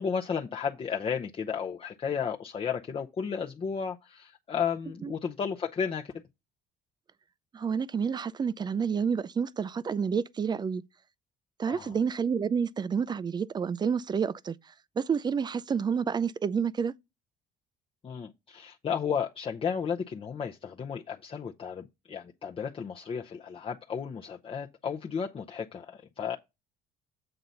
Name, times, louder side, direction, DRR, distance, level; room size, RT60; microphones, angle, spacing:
voice 1, 0.0-6.2 11.7-12.0 18.0-26.4, left 6 dB, 35° left, 0.7 m, -33 dB
voice 2, 7.5-10.8 11.6-14.6 15.0-16.9, right 6 dB, 25° right, 0.4 m, -29 dB
7.8 x 3.9 x 5.6 m
cardioid pair, 110°, 17 cm